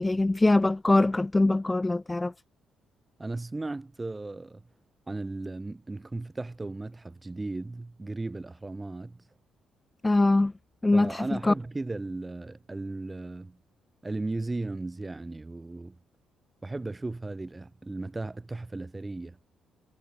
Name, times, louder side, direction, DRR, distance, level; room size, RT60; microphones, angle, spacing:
voice 1, 0.0-2.3 10.0-10.5 10.8-11.5, left 2 dB, 15° left, 0.5 m, -23 dB
voice 2, 3.2-4.6 5.1-9.2 10.9-13.6 14.0-16.0 16.6-19.4, right 2 dB, 20° right, 2.9 m, -36 dB
cardioid pair, 90°, 0 cm